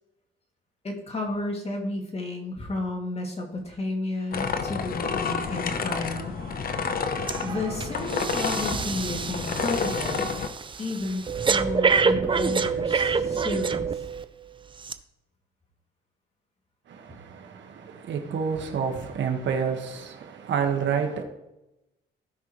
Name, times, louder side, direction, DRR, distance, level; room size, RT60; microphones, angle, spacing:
voice 1, 0.8-6.3 7.4-10.3 10.8-13.9, left 2 dB, 30° left, 2.5 m, -32 dB
sound 1, 4.3-10.5, left 5 dB, 45° left, 0.9 m, -30 dB
Shout / Cheering, 5.2-12.9, right 6 dB, 90° right, 2.6 m, -46 dB
Breathing, 7.3-7.5 7.8-14.2 14.8-14.9, right 5 dB, 25° right, 0.5 m, -27 dB
voice 2, 16.9-21.2, right 6 dB, 65° right, 1.6 m, -29 dB
16.5 x 5.7 x 3.2 m
cardioid pair, 90°, 20 cm